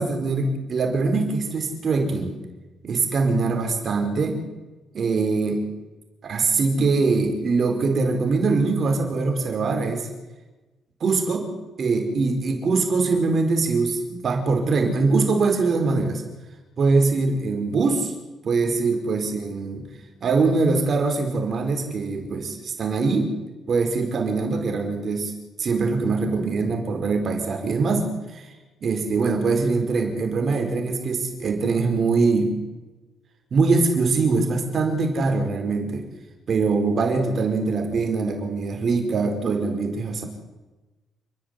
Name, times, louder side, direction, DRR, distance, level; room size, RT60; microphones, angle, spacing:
voice 1, 0.0-2.4 2.8-4.4 4.9-5.6 6.2-10.1 11.0-11.5 11.8-16.2 16.8-18.1 18.4-19.8 20.2-23.3 23.7-25.3 25.6-28.4 28.8-32.6 33.5-36.1 36.5-40.2, right 4 dB, 50° right, 5 dB, 5.0 m, -23 dB
29.0 x 10.5 x 9.8 m, 1.2 s
cardioid pair, 90°, 0 cm